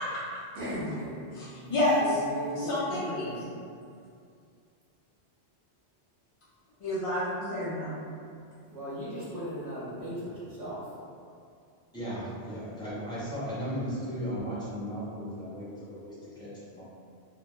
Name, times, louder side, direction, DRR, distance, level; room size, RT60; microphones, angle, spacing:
voice 1, 0.5-1.3 1.6-3.5 8.7-10.8, equal, 40° right, -9 dB, 0.7 m, -37 dB
voice 2, 1.3-1.9 2.6-3.3 6.8-7.9, left 1 dB, 55° left, -10 dB, 0.3 m, -30 dB
voice 3, 11.9-16.8, equal, 5° left, -13 dB, 0.7 m, -36 dB
2.2 x 2.1 x 2.9 m, 2.4 s
omnidirectional pair, 1.2 m